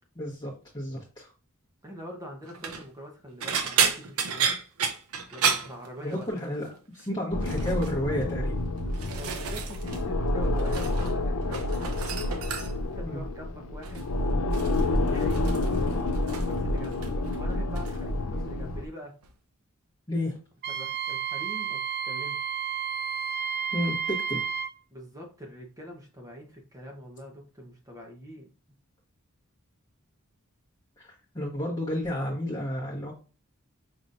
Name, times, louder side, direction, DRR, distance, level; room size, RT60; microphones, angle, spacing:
voice 1, 0.2-1.3 6.0-6.7 6.9-8.6 13.0-13.2 18.3-18.5 20.1-20.4 23.7-24.4 31.0-31.1 31.3-33.1, left 1 dB, 20° left, -6 dB, 1.0 m, -31 dB
voice 2, 1.8-4.5 5.3-6.3 9.2-11.9 12.7-14.1 14.7-15.4 16.5-19.1 20.7-22.5 24.9-28.5, equal, 15° right, 0 dB, 0.9 m, -44 dB
sound 1, 2.5-2.8 3.4-6.5 6.7-7.1 7.4-7.9 8.6-10.0 10.3-11.2 11.4-12.9 13.8-14.1 14.5-16.6 16.8-17.4 17.7-18.0 19.2-19.3, right 6 dB, 75° right, 0.7 m, -31 dB
sound 2, 7.3-18.9, left 2 dB, 65° left, 0.5 m, -29 dB
Wind instrument woodwind instrument, 20.6-24.7, right 7 dB, 45° right, 0.4 m, -31 dB
5.3 x 3.0 x 2.6 m, 0.35 s
head